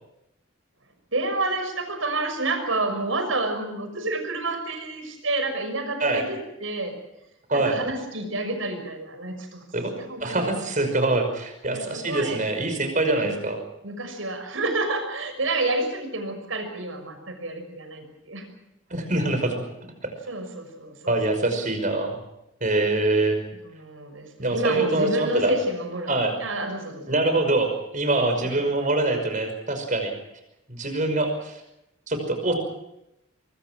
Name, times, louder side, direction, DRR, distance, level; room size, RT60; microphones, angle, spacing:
voice 1, 1.1-7.0 7.5-9.6 10.1-10.6 11.7-12.4 13.2-13.4 13.8-18.5 20.3-21.4 23.6-26.1 26.4-27.2 28.4-28.5, right 2 dB, 85° right, 7 dB, 6.2 m, -29 dB
voice 2, 10.2-13.6 18.9-19.6 20.0-20.1 21.1-22.2 22.6-23.4 24.4-25.5 26.1-26.3 27.1-30.1 30.7-31.6 32.1-32.5, right 2 dB, 40° right, 6 dB, 5.7 m, -24 dB
24.0 x 24.0 x 6.2 m, 0.85 s
head